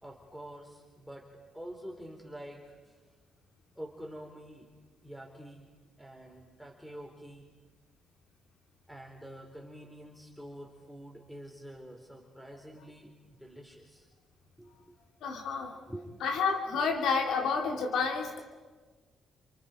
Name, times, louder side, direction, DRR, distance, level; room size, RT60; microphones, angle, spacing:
voice 1, 0.0-2.9 3.8-4.7 5.0-5.7 6.0-7.5 8.9-13.1 13.4-14.1 14.6-14.7 15.9-16.1, equal, ahead, 2 dB, 4.0 m, -47 dB
voice 2, 15.2-15.7 16.2-18.4, left 5 dB, 80° left, 2 dB, 2.9 m, -29 dB
29.5 x 29.0 x 5.2 m, 1.3 s
cardioid pair, 90°, 0 cm